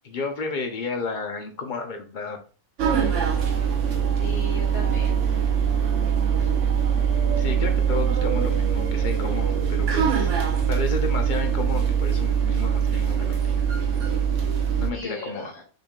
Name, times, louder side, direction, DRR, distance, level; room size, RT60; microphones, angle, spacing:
voice 1, 0.0-2.4 6.4-6.5 7.4-10.3 10.7-13.6 14.7-15.5, left 4 dB, 45° left, 5 dB, 0.7 m, -32 dB
sound 1, 2.8-14.9, right 7 dB, 60° right, 1.1 m, -23 dB
voice 2, 4.2-5.3 7.3-7.8 14.9-15.6, left 2 dB, 85° left, -5 dB, 2.4 m, -37 dB
5.8 x 3.6 x 2.4 m, 0.37 s
omnidirectional pair, 1.5 m